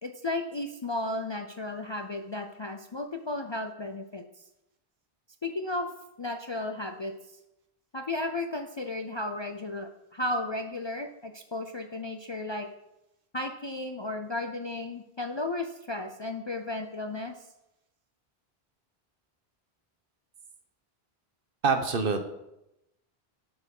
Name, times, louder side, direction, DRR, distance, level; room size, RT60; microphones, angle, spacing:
voice 1, 0.0-4.2 5.4-5.9 6.2-7.1 7.9-12.7 13.3-17.3, left 2 dB, 35° left, 5 dB, 0.5 m, -34 dB
voice 2, 21.6-22.3, right 4 dB, 60° right, 7 dB, 1.2 m, -25 dB
7.8 x 7.0 x 5.3 m, 0.87 s
omnidirectional pair, 1.0 m